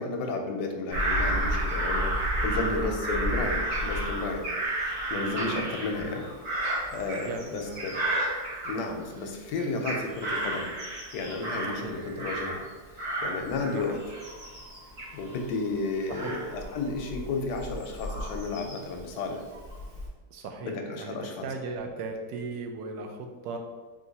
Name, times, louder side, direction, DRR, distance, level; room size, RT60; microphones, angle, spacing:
voice 1, 0.0-2.2 2.4-8.0 8.6-10.7 11.1-12.7 13.0-14.0 15.1-19.4 20.6-21.5, left 3 dB, 80° left, 4 dB, 1.2 m, -33 dB
Bird vocalization bird call bird song / Crow, 0.9-9.2 9.6-12.7 13.0-19.0 19.5-20.1, right 1 dB, 55° right, 1.6 m, -32 dB
voice 2, 2.6-3.0 5.5-5.7 7.3-7.8 11.7-12.0 13.7-14.0 16.1-16.3 20.3-23.6, right 4 dB, 75° right, 4 dB, 1.1 m, -37 dB
3.8 x 2.8 x 4.0 m, 1.3 s
omnidirectional pair, 1.8 m